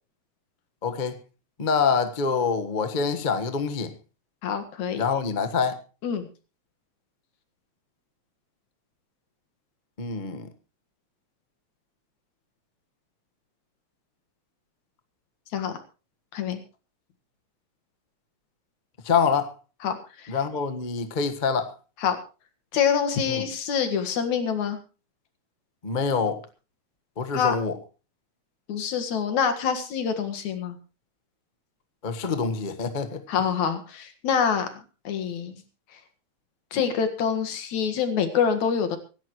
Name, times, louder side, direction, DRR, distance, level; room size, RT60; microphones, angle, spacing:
voice 1, 0.8-1.2 1.6-3.9 4.9-5.8 10.0-10.5 19.0-19.5 20.3-21.7 23.3-23.5 25.8-26.4 27.2-27.7 32.0-33.2, left 5 dB, 45° left, 0.5 m, -25 dB
voice 2, 4.4-5.0 6.0-6.3 15.5-15.8 16.3-16.6 19.8-20.4 22.0-22.2 22.7-24.8 27.3-27.6 28.7-30.8 33.3-35.6 35.9-36.0 36.7-39.0, left 7 dB, 75° left, 3.1 m, -26 dB
25.0 x 11.5 x 3.1 m
omnidirectional pair, 3.3 m